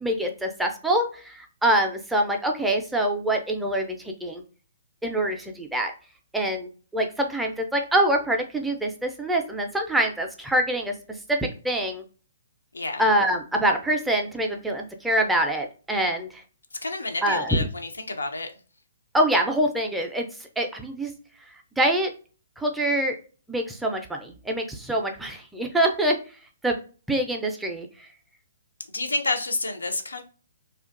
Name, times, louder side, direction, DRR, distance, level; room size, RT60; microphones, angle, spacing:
voice 1, 0.0-4.4 5.0-5.9 6.3-10.9 11.3-12.0 13.0-16.4 17.2-17.6 19.1-20.3 20.6-21.1 21.8-22.1 22.6-23.2 23.5-26.2 26.6-26.8 27.1-28.1, right 1 dB, 5° right, 0.4 m, -25 dB
voice 2, 16.8-18.5 28.9-30.2, left 2 dB, 85° left, 0.4 m, -29 dB
2.4 x 2.2 x 2.4 m
figure-of-eight pair, 130°, 0 cm